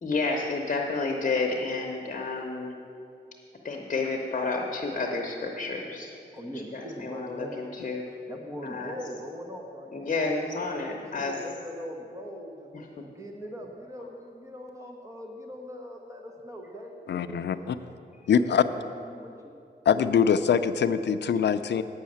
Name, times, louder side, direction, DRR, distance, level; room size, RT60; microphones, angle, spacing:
voice 1, 0.0-2.8 3.6-6.1 6.7-8.0 8.6-9.0 9.9-11.3 12.7-13.0, left 3 dB, 40° left, 0 dB, 0.9 m, -30 dB
voice 2, 6.3-7.6 8.3-10.1 10.6-17.8 18.3-19.5, equal, 15° right, 1 dB, 0.9 m, -41 dB
voice 3, 17.1-17.8 18.3-18.6 19.9-21.8, left 7 dB, 70° left, 10 dB, 0.5 m, -23 dB
8.8 x 6.4 x 8.6 m, 2.5 s
wide cardioid pair, 135°, 19 cm